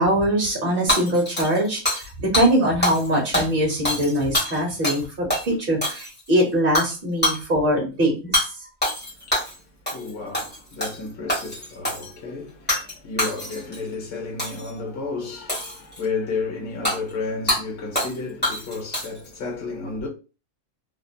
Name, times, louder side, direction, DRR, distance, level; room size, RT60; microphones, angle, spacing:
voice 1, 0.0-8.5, right 1 dB, 45° right, 1.0 m, -22 dB
Hammer / Shatter, 0.9-2.1 2.3-2.5 2.8-3.1 3.3-5.0 5.3-5.4 5.8-6.3 6.7-6.9 7.2-7.4 8.3-8.5 8.8-9.5 9.9-10.1 10.3-11.0 11.3-12.1 12.7-12.9 13.2-13.8 14.4-14.7 15.5-16.0 16.8-17.0 17.5-17.6 17.9-18.2 18.4-19.3, left 1 dB, 10° left, 1.0 m, -25 dB
voice 2, 9.0-20.1, left 4 dB, 50° left, 1.0 m, -32 dB
2.7 x 2.7 x 2.3 m
omnidirectional pair, 1.5 m